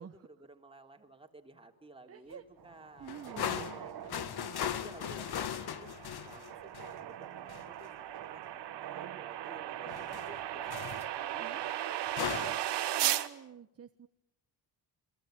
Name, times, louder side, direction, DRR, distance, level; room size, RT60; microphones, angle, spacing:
voice 1, 0.0-5.9 6.2-10.7 11.2-12.7, right 2 dB, 10° right, 3 dB, 3.1 m, -54 dB
voice 2, 2.1-2.4 3.0-3.7 4.2-4.6 11.4-11.6 13.0-14.1, right 7 dB, 35° right, 9 dB, 1.1 m, -48 dB
sound 1, 2.6-10.7, right 10 dB, 55° right, 1.1 m, -49 dB
sound 2, 3.0-7.0 7.5-7.7 9.9-10.4 10.7-11.1 12.1-12.6, left 9 dB, 60° left, 1.7 m, -38 dB
sound 3, 4.6-13.3, right 13 dB, 70° right, 1.4 m, -37 dB
28.5 x 22.0 x 9.1 m, 0.82 s
cardioid pair, 115°, 43 cm